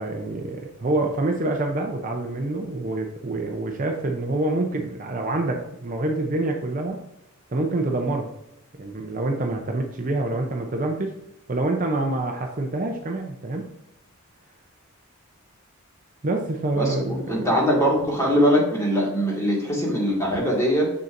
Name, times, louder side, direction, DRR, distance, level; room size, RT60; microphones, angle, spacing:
voice 1, 0.0-7.0 7.5-8.3 8.8-11.2 11.5-13.7 16.2-17.5, right 2 dB, 35° right, 2 dB, 0.6 m, -26 dB
voice 2, 16.8-20.9, equal, 15° left, -3 dB, 1.8 m, -22 dB
6.7 x 6.5 x 2.5 m, 0.85 s
head